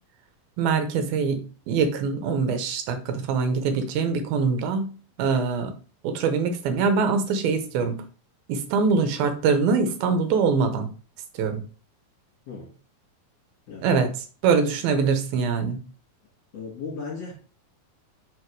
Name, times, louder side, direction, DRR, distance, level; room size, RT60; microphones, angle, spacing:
voice 1, 0.6-4.9 5.2-5.7 6.0-8.0 8.5-10.9 11.4-11.6 13.8-14.1 14.4-15.8, right 5 dB, 85° right, 7 dB, 2.7 m, -23 dB
voice 2, 16.5-17.3, left 4 dB, 50° left, -3 dB, 2.5 m, -36 dB
5.7 x 4.7 x 4.7 m, 0.37 s
omnidirectional pair, 4.3 m